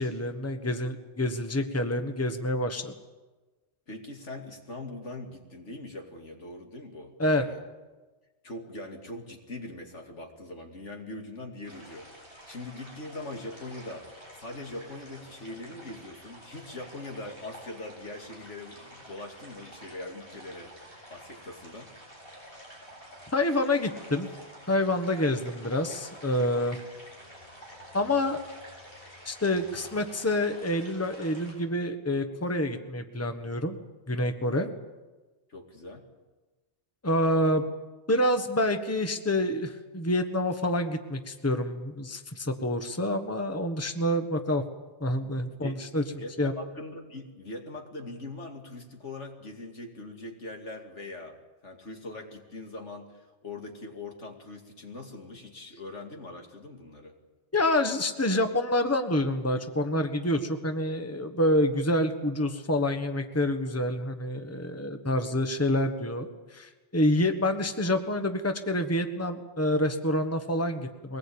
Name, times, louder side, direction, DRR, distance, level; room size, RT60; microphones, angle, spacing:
voice 1, 0.0-2.9 7.2-7.4 23.3-24.3 24.7-26.8 27.9-28.4 29.2-33.8 34.1-34.7 37.0-37.6 38.1-44.6 45.0-46.0 46.4-46.5 57.5-71.2, left 1 dB, 15° left, 7 dB, 1.3 m, -27 dB
voice 2, 3.9-7.6 8.4-20.7 21.1-21.9 35.5-36.0 45.6-45.8 46.2-57.1, left 2 dB, 85° left, 3 dB, 2.9 m, -42 dB
sound 1, 11.6-31.5, equal, 50° left, 8.0 m, -49 dB
23.0 x 19.0 x 8.7 m, 1.2 s
omnidirectional pair, 1.2 m